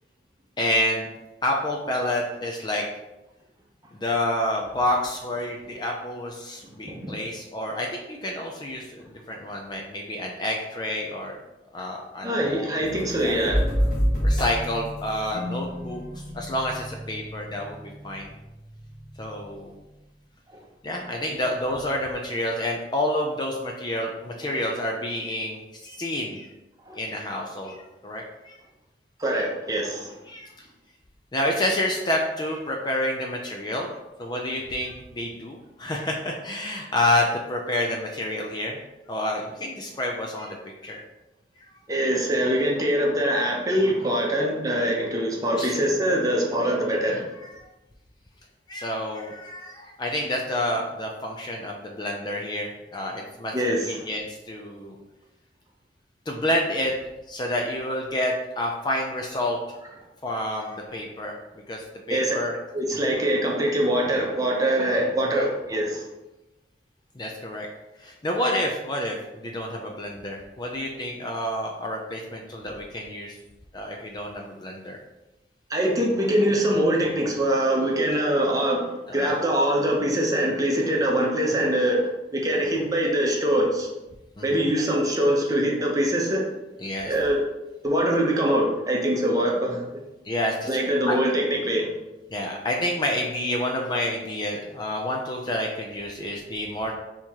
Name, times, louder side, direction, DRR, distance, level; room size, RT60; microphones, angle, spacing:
voice 1, 0.6-1.1 1.4-2.8 3.9-11.4 11.7-12.8 13.2-13.4 14.2-16.0 16.3-18.3 19.2-19.7 20.8-26.5 26.9-28.6 29.3-29.5 30.3-30.5 31.3-38.8 39.1-40.6 40.8-41.0 45.6-45.8 47.4-47.6 48.7-55.0 56.3-56.9 57.3-59.6 60.2-61.3 61.7-62.6 65.3-65.4 67.2-67.7 68.0-73.3 73.7-75.0 79.1-79.3 84.4-84.6 86.8-87.2 90.2-90.8 91.1-91.2 92.3-97.0, left 1 dB, 25° left, 1 dB, 0.4 m, -29 dB
voice 2, 12.2-13.7 20.5-20.6 26.9-27.0 29.2-30.1 41.9-47.2 53.5-54.1 62.1-62.4 62.7-66.0 75.7-82.1 82.3-83.9 84.4-86.4 87.0-87.4 87.8-89.8 90.7-91.9, right 1 dB, 20° right, -1 dB, 0.7 m, -23 dB
sound 1, 12.8-19.6, equal, 55° left, 1.4 m, -29 dB
4.4 x 2.9 x 3.6 m, 0.99 s
head